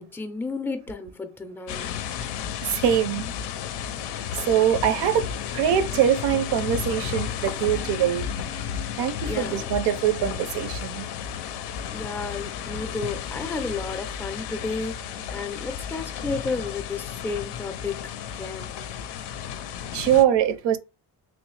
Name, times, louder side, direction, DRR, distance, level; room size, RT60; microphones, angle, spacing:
voice 1, 0.0-1.9 9.2-9.8 11.9-18.1 18.4-18.7, left 4 dB, 5° left, 0.3 m, -32 dB
sound 1, 1.7-20.2, left 8 dB, 90° left, 0.5 m, -33 dB
voice 2, 2.6-3.3 4.3-8.3 9.0-11.1 19.9-20.8, right 10 dB, 90° right, 0.6 m, -23 dB
3.2 x 3.0 x 3.1 m
cardioid pair, 140°, 40 cm